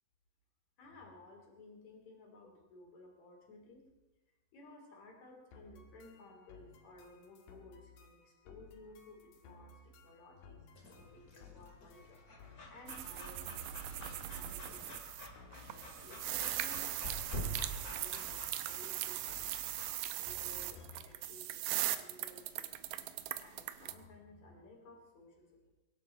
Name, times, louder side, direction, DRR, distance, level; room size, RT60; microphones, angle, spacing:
voice 1, 0.8-3.9 4.5-15.2 15.6-19.7 20.1-22.8 23.1-25.7, left 2 dB, 55° left, 1 dB, 4.3 m, -57 dB
sound 1, 5.5-21.3, left 4 dB, 85° left, 3.5 m, -59 dB
Breathing / Dog, 10.8-19.9, equal, 30° left, 2.3 m, -47 dB
sound 2, 12.9-15.3 15.5-23.9, right 13 dB, 75° right, 2.2 m, -40 dB
23.0 x 12.0 x 4.5 m, 1.1 s
omnidirectional pair, 4.1 m